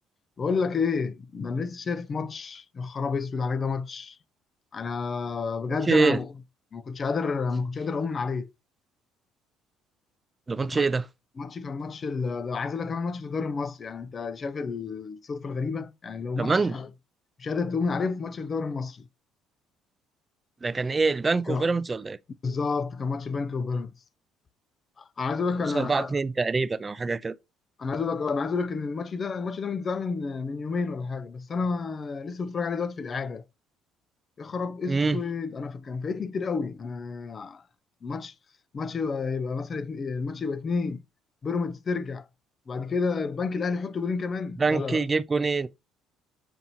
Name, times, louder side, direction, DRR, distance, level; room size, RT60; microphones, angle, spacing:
voice 1, 0.4-4.2 4.7-6.3 6.7-8.5 10.7-10.8 11.4-16.9 17.4-19.1 21.5-21.7 22.4-23.9 25.0-26.1 27.8-33.4 34.4-37.6 38.0-38.3 38.7-41.0 41.4-42.3 42.7-45.0, left 4 dB, 40° left, 0.5 m, -30 dB
voice 2, 5.9-6.2 10.5-11.1 16.4-16.8 20.6-22.2 25.7-27.4 34.9-35.2 44.6-45.7, right 4 dB, 25° right, 0.4 m, -25 dB
6.9 x 2.5 x 2.8 m
supercardioid pair, 70°, 0 cm